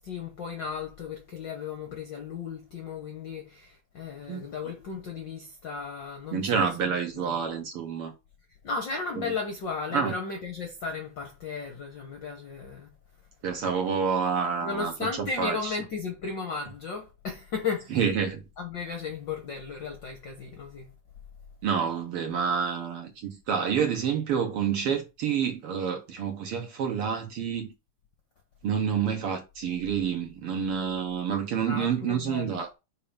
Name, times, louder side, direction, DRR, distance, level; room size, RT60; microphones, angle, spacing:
voice 1, 0.0-7.4 8.6-12.9 14.6-18.1 18.6-20.9 31.7-32.6, left 5 dB, 65° left, 1.1 m, -35 dB
voice 2, 6.3-8.1 9.9-10.1 13.4-14.9 15.4-15.7 17.9-18.4 21.6-27.7 28.6-32.7, right 7 dB, 65° right, 1.6 m, -28 dB
5.6 x 4.7 x 5.2 m
omnidirectional pair, 3.5 m